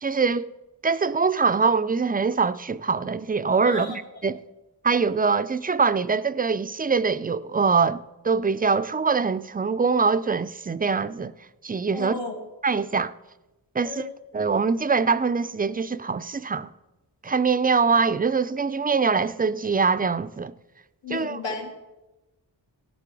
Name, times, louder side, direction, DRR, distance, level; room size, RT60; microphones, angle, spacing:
voice 1, 0.0-0.5 0.8-4.4 4.8-8.0 8.2-11.3 11.6-12.1 12.6-13.1 13.7-14.1 14.3-16.7 17.2-20.5 21.1-21.4, right 5 dB, 20° right, 0.3 m, -23 dB
voice 2, 3.6-4.0 11.9-12.4 13.8-14.1 21.0-21.7, left 4 dB, 85° left, 2.1 m, -33 dB
17.0 x 6.8 x 4.7 m
wide cardioid pair, 70°, 43 cm